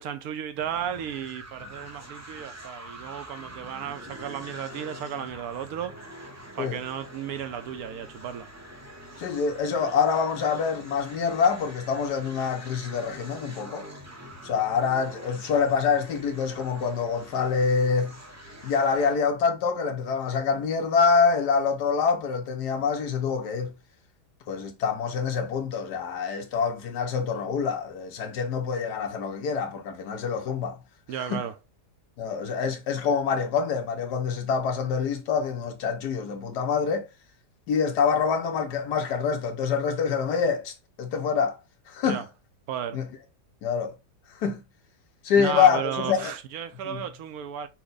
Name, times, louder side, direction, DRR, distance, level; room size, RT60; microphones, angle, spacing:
voice 1, 0.0-6.0 6.5-8.5 31.1-31.6 42.0-42.2 42.7-43.0 45.4-47.7, right 9 dB, 70° right, 1.0 m, -34 dB
sound 1, 0.6-19.2, right 1 dB, 20° right, 0.5 m, -45 dB
voice 2, 9.2-13.8 14.4-18.1 18.6-23.7 24.5-30.8 31.2-31.4 32.2-37.0 37.7-41.6 41.9-42.2 42.9-43.0 43.6-43.9 44.4-44.6 45.2-46.3 46.8-47.0, left 6 dB, 70° left, 1.4 m, -26 dB
5.8 x 2.2 x 3.9 m
omnidirectional pair, 1.8 m